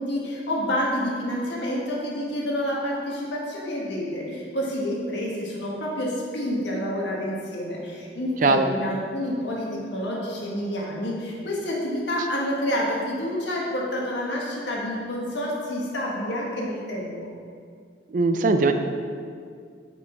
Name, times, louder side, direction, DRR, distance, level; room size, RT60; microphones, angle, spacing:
voice 1, 0.0-17.3, equal, 80° left, -3 dB, 1.6 m, -28 dB
voice 2, 18.1-18.7, right 3 dB, 45° right, 7 dB, 0.4 m, -20 dB
6.1 x 6.1 x 4.5 m, 2.2 s
head